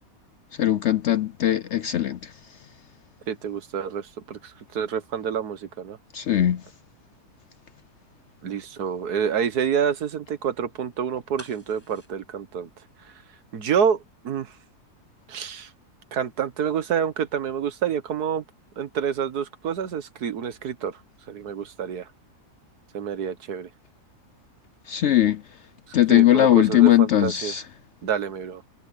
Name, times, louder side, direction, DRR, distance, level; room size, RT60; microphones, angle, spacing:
voice 1, 0.5-2.4 6.1-6.6 24.9-25.4 25.9-27.6, left 13 dB, 65° left, 0.7 m, -19 dB
voice 2, 3.3-6.0 8.4-12.7 13.0-13.1 13.5-14.5 15.3-15.7 16.1-18.4 18.8-21.0 21.3-22.1 22.9-23.7 26.1-27.5 28.0-28.6, right 7 dB, 80° right, 1.8 m, -28 dB
sound 1, 11.4-13.4 13.7-13.8, equal, 10° right, 5.3 m, -47 dB
omnidirectional pair, 1.6 m